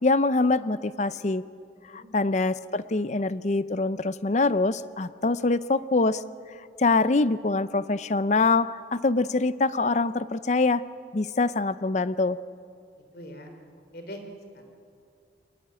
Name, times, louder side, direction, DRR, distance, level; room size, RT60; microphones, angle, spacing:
voice 1, 0.0-1.4 1.9-6.2 6.8-10.8 11.1-12.4, left 3 dB, 40° left, 15 dB, 0.6 m, -24 dB
voice 2, 1.9-2.3 3.0-3.4 13.1-13.5 13.9-14.2 14.5-14.6, left 1 dB, 60° left, 5 dB, 3.4 m, -43 dB
22.5 x 20.0 x 9.0 m, 2.3 s
head